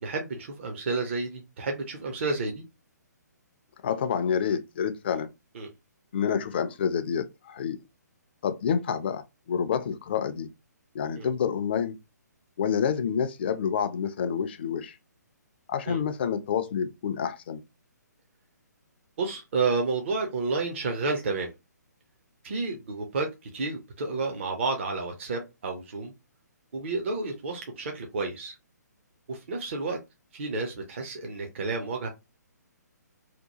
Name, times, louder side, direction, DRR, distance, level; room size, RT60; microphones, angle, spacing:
voice 1, 0.0-2.6 5.5-5.7 11.2-11.3 15.9-16.0 19.2-21.5 22.4-26.1 26.7-28.6 29.3-30.0 30.3-32.1, right 3 dB, 40° right, 0.5 m, -30 dB
voice 2, 3.8-5.3 6.1-7.8 8.4-10.5 10.9-12.0 12.6-15.0 15.7-17.6, left 7 dB, 35° left, 0.3 m, -28 dB
2.8 x 2.1 x 2.8 m
figure-of-eight pair, 130°, 10 cm